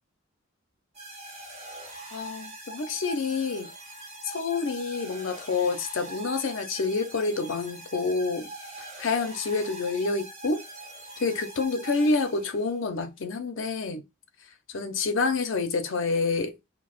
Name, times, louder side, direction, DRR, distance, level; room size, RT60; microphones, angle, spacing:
sound 1, 0.9-12.8, right 2 dB, 30° right, 1.0 m, -42 dB
voice 1, 2.1-3.7 4.2-8.5 9.0-10.6 11.2-14.0 14.7-16.6, left 4 dB, 75° left, 0.6 m, -28 dB
4.6 x 2.1 x 2.4 m
head